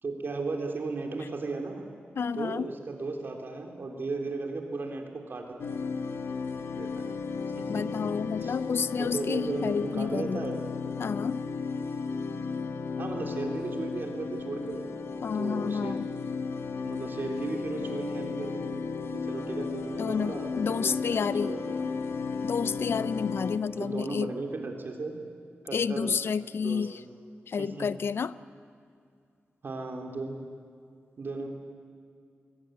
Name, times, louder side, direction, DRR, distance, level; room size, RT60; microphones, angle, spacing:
voice 1, 0.0-1.8 2.3-5.6 6.7-7.1 7.5-8.1 8.4-8.6 9.0-10.6 13.0-14.8 15.3-16.0 16.7-18.7 19.1-21.9 23.8-25.2 25.6-26.1 26.6-26.9 27.6-27.9 29.6-30.4 31.2-31.5, right 3 dB, 55° right, 2 dB, 3.3 m, -36 dB
voice 2, 2.2-2.7 7.7-10.4 11.0-11.4 15.2-16.1 20.0-20.3 20.6-21.5 22.4-24.3 25.7-26.9 27.5-28.3, left 6 dB, 70° left, 16 dB, 0.5 m, -30 dB
sound 1, 5.6-23.6, left 5 dB, 85° left, 1.3 m, -34 dB
21.5 x 19.0 x 9.2 m, 2.3 s
wide cardioid pair, 130°, 4 cm